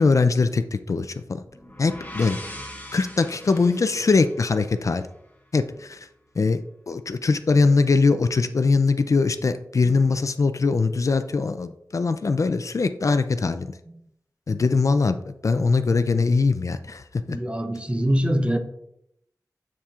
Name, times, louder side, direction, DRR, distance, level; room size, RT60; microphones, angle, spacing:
voice 1, 0.0-1.4 1.8-2.4 2.9-5.1 5.5-6.1 6.4-6.6 6.9-13.7 14.5-15.2 15.4-17.4, left 4 dB, 55° left, 10 dB, 0.4 m, -21 dB
sound 1, 1.4-5.3, left 1 dB, 25° left, 1.9 m, -41 dB
voice 2, 17.3-18.6, equal, 15° right, 6 dB, 0.8 m, -24 dB
7.3 x 7.0 x 2.4 m, 0.78 s
wide cardioid pair, 70°, 7 cm